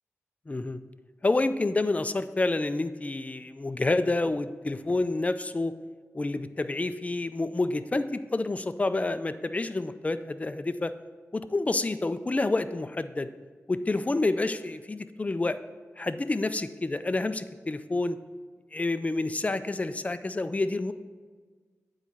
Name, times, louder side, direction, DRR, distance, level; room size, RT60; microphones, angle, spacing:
voice 1, 0.5-0.8 1.2-5.7 6.1-10.9 11.3-13.3 13.7-15.6 16.0-18.2 18.7-20.9, left 2 dB, 25° left, 11 dB, 0.4 m, -28 dB
8.8 x 4.1 x 6.1 m, 1.5 s
wide cardioid pair, 65°, 5 cm